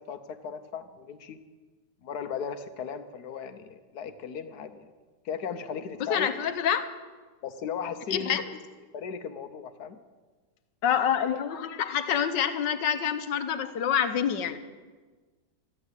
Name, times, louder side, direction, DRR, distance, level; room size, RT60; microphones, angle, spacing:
voice 1, 0.1-1.4 2.0-4.9 5.2-6.3 7.4-8.4 8.9-10.0, left 7 dB, 65° left, 10 dB, 1.3 m, -36 dB
voice 2, 6.1-6.9 8.1-8.5 10.8-14.6, left 8 dB, 90° left, 8 dB, 1.6 m, -27 dB
13.5 x 11.0 x 8.1 m, 1.4 s
omnidirectional pair, 1.9 m